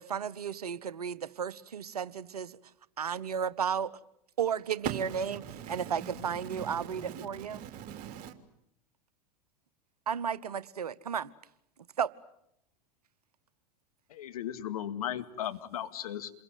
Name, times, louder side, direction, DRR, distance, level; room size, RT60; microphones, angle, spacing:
voice 1, 0.0-2.5 3.0-3.9 4.4-5.4 5.7-7.6 10.1-11.3 12.0-12.1, right 7 dB, 75° right, 1.0 m, -33 dB
voice 2, 4.8-7.3 7.5-8.3, right 8 dB, 45° right, 3.1 m, -40 dB
voice 3, 14.1-16.3, left 10 dB, 65° left, 2.2 m, -36 dB
28.0 x 22.0 x 9.3 m
figure-of-eight pair, 85°, 20 cm